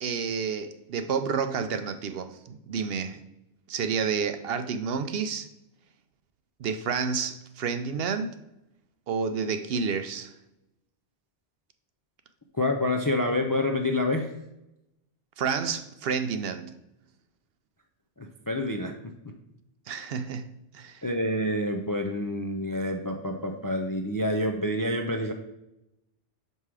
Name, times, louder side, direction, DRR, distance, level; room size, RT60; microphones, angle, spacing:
voice 1, 0.0-3.2 3.7-5.5 6.6-8.4 9.1-10.3 15.4-16.8 19.9-21.0, right 6 dB, 65° right, 0.8 m, -30 dB
voice 2, 12.5-14.3 18.2-19.1 21.0-25.3, left 1 dB, 30° left, 0.4 m, -28 dB
6.0 x 5.4 x 4.8 m
omnidirectional pair, 1.2 m